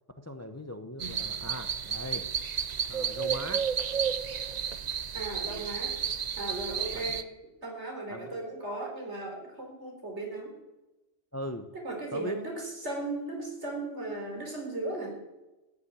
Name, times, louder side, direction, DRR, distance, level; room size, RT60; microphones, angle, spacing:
voice 1, 0.2-2.3 2.9-3.7 6.9-7.0 8.1-8.4 11.3-11.7 12.1-12.4, equal, 15° left, 8 dB, 0.8 m, -39 dB
sound 1, 1.0-7.2, right 7 dB, 45° right, 0.6 m, -32 dB
voice 2, 5.1-6.0 6.4-7.3 7.6-10.6 11.7-15.2, right 2 dB, 65° right, 1 dB, 4.5 m, -36 dB
15.0 x 9.8 x 8.8 m, 1.0 s
omnidirectional pair, 1.2 m